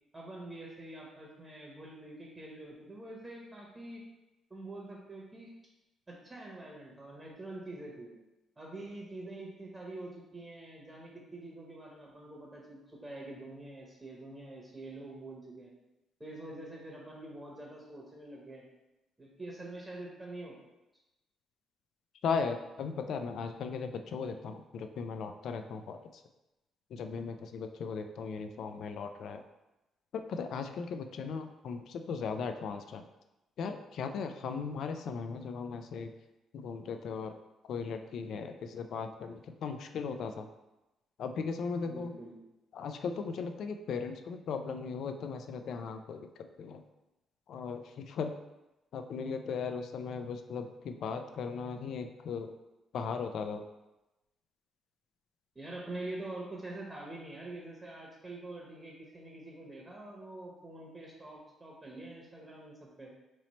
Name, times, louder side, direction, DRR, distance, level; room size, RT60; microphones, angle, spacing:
voice 1, 0.1-4.0 4.5-5.5 6.1-8.2 8.6-15.7 16.2-18.7 19.2-20.6 41.8-42.4 49.4-49.5 55.5-63.1, right 2 dB, 20° right, -2 dB, 0.9 m, -45 dB
voice 2, 22.2-26.0 26.9-29.4 30.1-33.0 33.6-36.1 36.5-37.3 37.7-40.5 41.2-42.1 42.7-46.8 47.5-48.3 48.9-52.5 52.9-53.6, left 5 dB, 70° left, 7 dB, 0.3 m, -37 dB
3.1 x 2.9 x 4.1 m, 0.98 s
cardioid pair, 90°, 0 cm